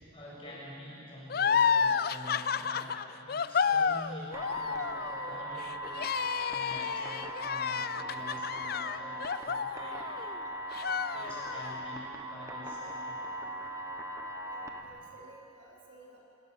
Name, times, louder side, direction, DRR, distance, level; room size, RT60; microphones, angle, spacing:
voice 1, 0.1-10.1 11.1-13.2, left 1 dB, 25° left, -6 dB, 6.8 m, -47 dB
sound 1, 1.3-10.4 10.7-11.8, left 6 dB, 50° left, 0.4 m, -31 dB
sound 2, 4.3-14.8, right 1 dB, 15° right, 1.1 m, -39 dB
voice 2, 14.5-16.2, right 2 dB, 70° right, -3 dB, 3.9 m, -54 dB
26.5 x 17.5 x 6.9 m, 2.9 s
head